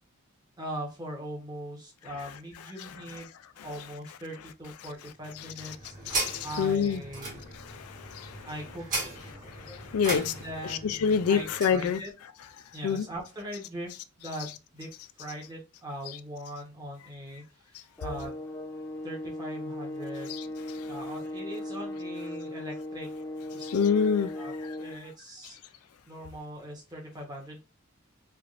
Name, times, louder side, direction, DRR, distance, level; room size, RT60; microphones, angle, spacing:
voice 1, 0.6-3.3 3.6-5.9 6.4-7.4 8.4-9.2 10.1-12.1 12.7-13.9 14.2-14.9 15.2-17.4 18.0-18.3 19.0-20.4 20.8-23.1 23.5-23.9 24.4-25.6 26.1-27.6, equal, 20° right, 0.9 m, -40 dB
sound 1, 5.2-11.8, right 2 dB, 40° right, 1.4 m, -37 dB
voice 2, 6.1-7.0 7.5-8.5 9.4-10.3 10.7-12.0 12.8-13.1 20.3-20.9 23.6-24.3 24.6-24.7, left 7 dB, 90° left, 0.4 m, -28 dB
sound 2, 18.0-25.0, left 1 dB, 10° left, 0.4 m, -37 dB
3.4 x 2.4 x 2.5 m
head